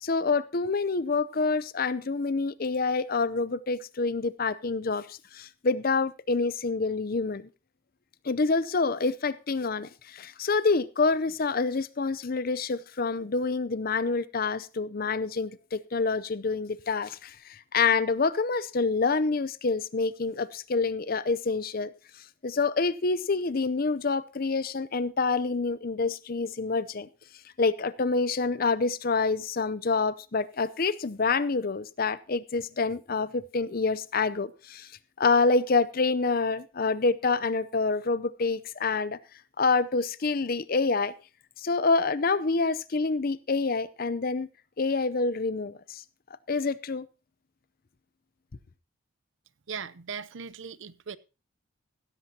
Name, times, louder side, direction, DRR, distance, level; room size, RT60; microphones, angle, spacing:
voice 1, 0.0-7.5 8.2-21.9 22.4-27.1 27.6-34.9 35.2-39.2 39.6-41.1 41.6-44.5 44.8-46.0 46.5-47.1, left 4 dB, 45° left, 0.6 m, -27 dB
voice 2, 49.7-51.2, right 6 dB, 65° right, 0.7 m, -38 dB
16.0 x 13.5 x 2.8 m
head